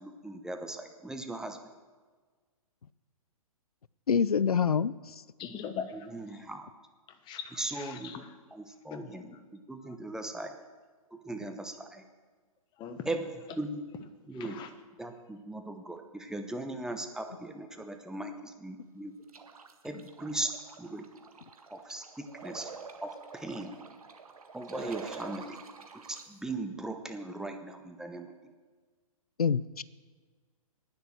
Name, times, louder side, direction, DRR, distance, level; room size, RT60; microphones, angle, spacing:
voice 1, 0.0-1.6 6.1-6.7 7.6-8.1 8.5-10.6 11.1-12.0 13.1-13.2 13.6-13.8 14.3-14.6 15.0-19.2 19.8-20.5 20.8-21.0 21.7-22.7 23.0-23.8 24.5-25.6 25.9-28.3, right 2 dB, 5° right, 5 dB, 1.0 m, -38 dB
voice 2, 4.1-5.2 29.4-29.8, left 6 dB, 85° left, 20 dB, 0.5 m, -26 dB
voice 3, 5.4-6.4 7.1-8.4 8.9-9.4 9.8-10.0 12.8-13.1 14.3-14.7, left 7 dB, 25° left, 9 dB, 1.2 m, -42 dB
sound 1, 19.3-26.2, right 5 dB, 75° right, 1.6 m, -46 dB
10.5 x 9.6 x 7.7 m, 1.5 s
figure-of-eight pair, 125°, 19 cm